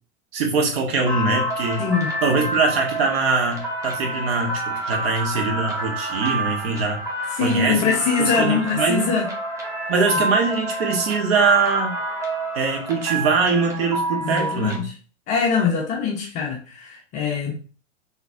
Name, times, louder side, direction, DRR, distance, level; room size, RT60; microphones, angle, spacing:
voice 1, 0.3-1.9 2.2-7.0 7.4-9.1 9.9-12.0 12.5-14.8, right 4 dB, 55° right, 1.0 m, -22 dB
sound 1, 1.0-14.8, right 1 dB, 10° right, 0.7 m, -28 dB
voice 2, 1.8-2.1 7.3-9.3 14.2-14.9 15.3-17.5, left 5 dB, 20° left, 0.4 m, -23 dB
3.9 x 2.6 x 2.4 m
figure-of-eight pair, 100°, 36 cm